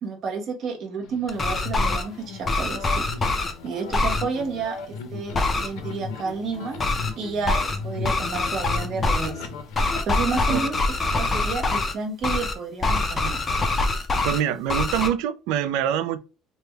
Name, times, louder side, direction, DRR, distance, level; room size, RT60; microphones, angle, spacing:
voice 1, 0.0-6.8 7.2-9.5 10.1-10.7 11.2-13.4, right 4 dB, 40° right, 0.7 m, -31 dB
sound 1, 1.0-10.0, left 5 dB, 80° left, 0.6 m, -36 dB
sound 2, 1.3-2.0 2.5-3.5 3.9-4.2 5.3-5.7 6.8-7.1 7.5-7.8 8.0-9.3 9.7-11.9 12.2-12.5 12.8-14.4 14.7-15.1, left 2 dB, 20° left, 0.4 m, -24 dB
voice 2, 14.2-16.2, right 10 dB, 80° right, 0.3 m, -25 dB
3.3 x 2.1 x 3.3 m
cardioid pair, 180°, 0 cm